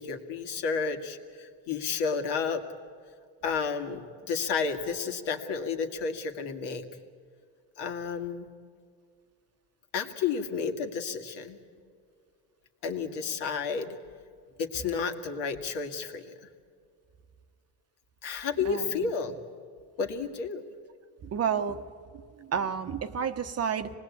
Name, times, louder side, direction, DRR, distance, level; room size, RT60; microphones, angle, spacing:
voice 1, 0.0-2.6 3.4-6.8 7.8-8.5 9.9-11.6 12.8-14.0 14.6-16.3 18.2-19.3 20.0-20.6, left 5 dB, 65° left, 5 dB, 2.3 m, -31 dB
voice 2, 18.6-19.0 21.2-21.8 22.5-23.9, right 7 dB, 35° right, 9 dB, 1.0 m, -30 dB
25.5 x 19.5 x 8.6 m, 2.2 s
cardioid pair, 130°, 44 cm